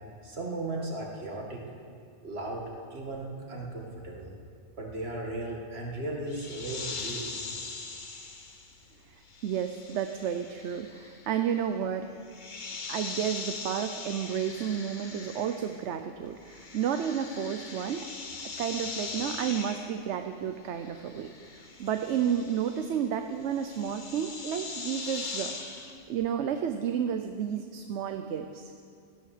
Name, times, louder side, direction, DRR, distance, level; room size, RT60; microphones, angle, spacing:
voice 1, 0.2-1.6 2.2-2.6 2.9-4.3 4.8-7.8, right 2 dB, 65° right, -1 dB, 2.3 m, -36 dB
sound 1, 6.3-26.0, left 4 dB, 45° left, 1.1 m, -41 dB
voice 2, 9.4-12.1 12.9-18.1 18.6-21.3 21.8-28.7, right 8 dB, 80° right, 7 dB, 1.0 m, -31 dB
16.5 x 10.5 x 6.6 m, 2.3 s
omnidirectional pair, 1.2 m